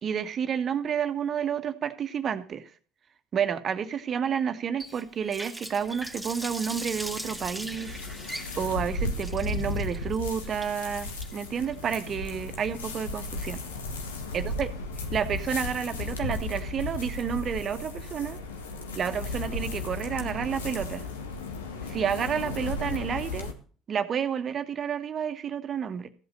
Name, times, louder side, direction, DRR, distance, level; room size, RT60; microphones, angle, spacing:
voice 1, 0.0-2.7 3.3-8.0 8.6-13.6 14.3-14.7 15.1-18.4 18.9-21.1 21.8-23.5 23.9-26.1, right 7 dB, 45° right, 1.5 m, -30 dB
Water tap faucet, 4.8-13.7, right 1 dB, ahead, 2.4 m, -41 dB
sound 1, 5.8-23.5, left 2 dB, 90° left, 1.6 m, -35 dB
14.5 x 8.2 x 6.7 m
hypercardioid pair, 65°, 0 cm